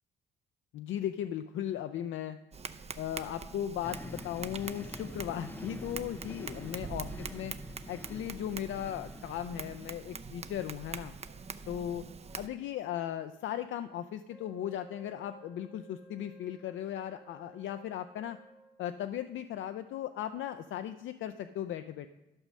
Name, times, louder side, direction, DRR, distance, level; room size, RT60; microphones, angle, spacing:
voice 1, 0.7-2.4 3.0-7.1 7.3-7.5 7.9-11.1 11.7-12.1 12.4-18.4 18.8-22.1, left 11 dB, 75° left, 9 dB, 0.5 m, -37 dB
Tap, 2.5-12.5, right 5 dB, 30° right, 0.6 m, -44 dB
sound 1, 3.8-10.3, left 1 dB, 10° left, 0.5 m, -47 dB
Wind instrument woodwind instrument, 14.3-18.9, right 2 dB, 10° right, 1.2 m, -56 dB
11.5 x 5.4 x 6.3 m, 0.99 s
cardioid pair, 90°, 20 cm